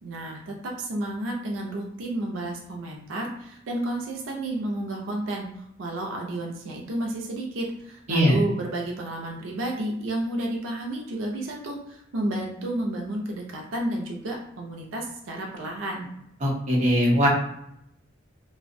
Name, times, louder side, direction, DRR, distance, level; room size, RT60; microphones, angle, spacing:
voice 1, 0.0-16.1, right 1 dB, 85° right, 0 dB, 0.4 m, -31 dB
voice 2, 16.4-17.3, equal, 40° right, -5 dB, 0.7 m, -20 dB
2.5 x 2.0 x 2.5 m, 0.76 s
head